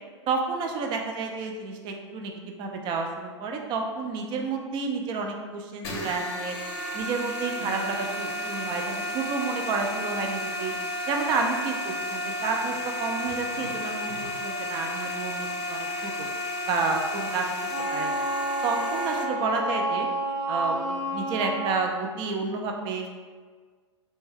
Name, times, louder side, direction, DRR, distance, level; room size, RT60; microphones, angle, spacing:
voice 1, 0.3-2.3 2.6-6.6 6.9-10.7 11.1-16.3 16.7-17.4 17.9-18.3 18.6-20.1 20.5-23.1, right 4 dB, 30° right, 3 dB, 0.4 m, -30 dB
sound 1, 5.8-19.2, left 1 dB, 55° left, 0.6 m, -32 dB
Wind instrument woodwind instrument, 17.7-22.0, right 1 dB, 60° right, 0.7 m, -29 dB
2.6 x 2.2 x 3.2 m, 1.5 s
figure-of-eight pair, 105°, 16 cm